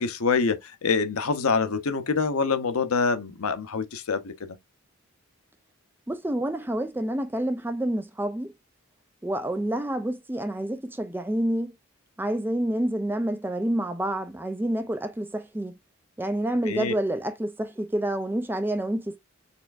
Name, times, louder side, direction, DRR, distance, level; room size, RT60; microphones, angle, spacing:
voice 1, 0.0-4.6 16.6-16.9, left 5 dB, 80° left, 0.7 m, -26 dB
voice 2, 6.1-8.5 9.2-11.7 12.2-15.7 16.2-19.2, right 1 dB, 10° right, 0.3 m, -28 dB
4.2 x 3.4 x 2.4 m
head